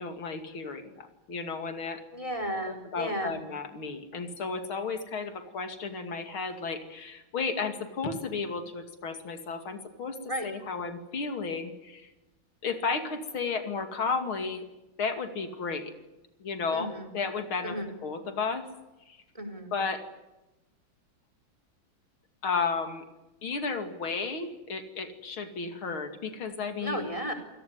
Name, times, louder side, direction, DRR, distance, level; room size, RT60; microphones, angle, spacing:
voice 1, 0.0-2.0 2.6-10.2 10.4-12.1 12.6-14.6 15.0-15.9 16.4-18.7 19.1-19.2 19.7-20.0 22.4-23.0 23.4-27.0, left 4 dB, 85° left, 8 dB, 3.4 m, -33 dB
voice 2, 2.1-3.4 10.3-10.5 16.7-17.1 17.6-17.9 19.4-19.7 26.8-27.3, equal, 15° right, 7 dB, 4.3 m, -33 dB
27.0 x 18.0 x 9.5 m, 1.0 s
omnidirectional pair, 2.2 m